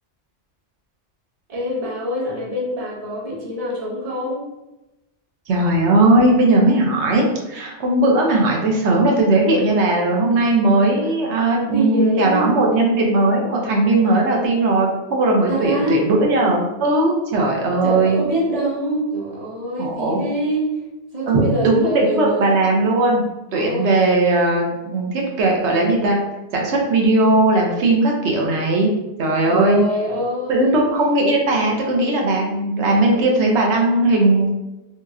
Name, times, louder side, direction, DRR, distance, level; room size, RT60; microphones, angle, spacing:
voice 1, 1.5-4.5 11.0-11.2 11.7-12.6 15.5-16.1 17.8-20.8 21.1-22.5 23.5-23.9 29.5-30.8 33.1-33.3, right 1 dB, 35° right, -5 dB, 0.8 m, -24 dB
voice 2, 5.5-18.2 19.8-20.2 21.3-23.3 23.5-26.2 26.5-28.9 29.2-29.8 30.5-34.5, right 2 dB, 70° right, -1 dB, 0.9 m, -18 dB
3.0 x 2.8 x 2.3 m, 1.0 s
omnidirectional pair, 1.2 m